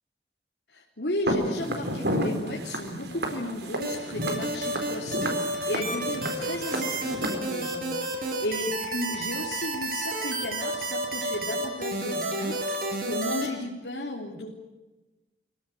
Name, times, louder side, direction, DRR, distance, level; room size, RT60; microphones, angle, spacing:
voice 1, 0.7-14.5, left 1 dB, 75° left, -2 dB, 3.4 m, -34 dB
Walk footsteps, 1.3-7.3, right 1 dB, 75° right, 4.5 m, -32 dB
sound 1, 3.8-13.5, right 2 dB, 55° right, 5.2 m, -30 dB
25.5 x 17.5 x 9.3 m, 1.1 s
head